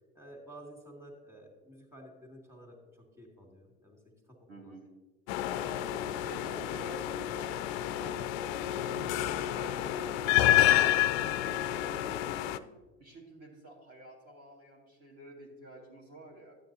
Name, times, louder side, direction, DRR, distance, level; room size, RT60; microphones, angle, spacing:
voice 1, 0.1-4.0 4.3-4.7 5.6-7.6, equal, 5° right, 0 dB, 2.3 m, -51 dB
voice 2, 4.5-4.9 6.3-7.0 7.3-7.5 8.0-9.1 9.5-12.6 13.0-16.6, right 1 dB, 35° right, -3 dB, 1.8 m, -50 dB
sound 1, 5.3-12.6, left 13 dB, 45° left, 0.4 m, -29 dB
13.0 x 9.0 x 2.7 m, 1.3 s
figure-of-eight pair, 80°, 45 cm